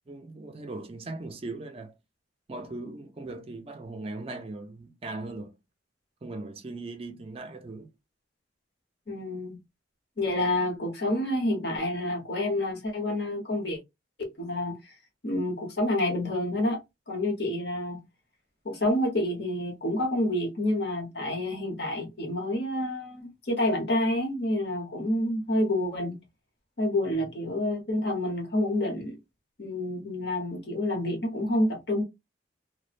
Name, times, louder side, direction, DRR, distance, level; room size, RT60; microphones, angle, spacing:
voice 1, 0.1-2.0 2.5-5.5 6.2-7.9 27.0-27.4, right 2 dB, 30° right, 0.4 m, -39 dB
voice 2, 9.1-9.6 10.2-13.8 14.2-14.7 15.2-18.0 18.6-26.2 26.8-29.2 29.6-32.0, left 1 dB, 55° left, 1.0 m, -28 dB
3.0 x 2.1 x 2.4 m
head